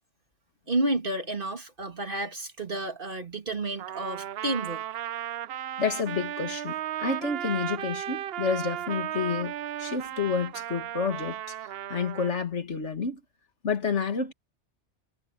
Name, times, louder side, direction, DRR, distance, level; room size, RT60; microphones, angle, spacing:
voice 1, 0.7-4.8, right 2 dB, 50° right, 2.4 m, -31 dB
Trumpet, 3.8-12.3, right 12 dB, 65° right, 0.7 m, -35 dB
voice 2, 5.8-9.5 9.8-11.4 11.9-13.2 13.6-14.3, left 5 dB, 80° left, 2.2 m, -29 dB
omnidirectional pair, 1.2 m